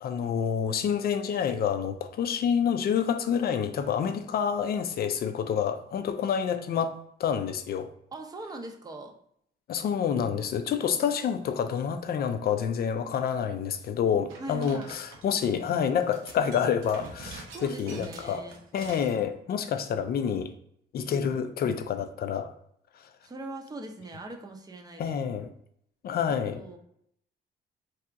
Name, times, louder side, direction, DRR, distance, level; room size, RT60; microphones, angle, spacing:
voice 1, 0.0-6.9 7.2-7.9 9.7-18.4 18.7-20.5 20.9-22.5 25.0-25.5 26.0-26.6, left 7 dB, 50° left, 0.4 m, -28 dB
voice 2, 8.1-9.1 14.4-15.0 17.5-18.6 23.2-25.2 26.5-26.8, right 2 dB, 20° right, 0.6 m, -41 dB
sound 1, 14.3-15.5 15.9-19.2, right 4 dB, 90° right, 0.7 m, -46 dB
2.8 x 2.3 x 3.4 m
cardioid pair, 90°, 20 cm